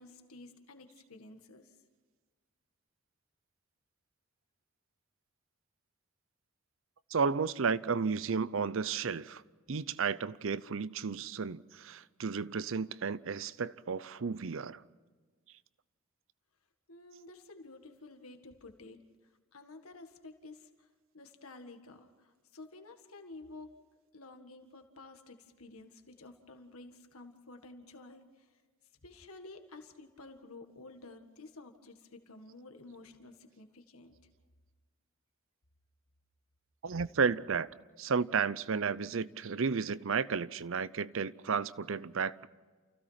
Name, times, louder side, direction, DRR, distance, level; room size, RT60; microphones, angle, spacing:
voice 1, 0.0-1.8 16.9-19.0 19.5-20.9 21.1-23.7 24.1-28.5 29.0-34.2, left 2 dB, 90° left, 1.8 m, -52 dB
voice 2, 7.1-9.4 9.7-14.8 36.8-37.7 38.0-42.5, right 5 dB, 65° right, 0.6 m, -33 dB
29.0 x 16.0 x 5.8 m
head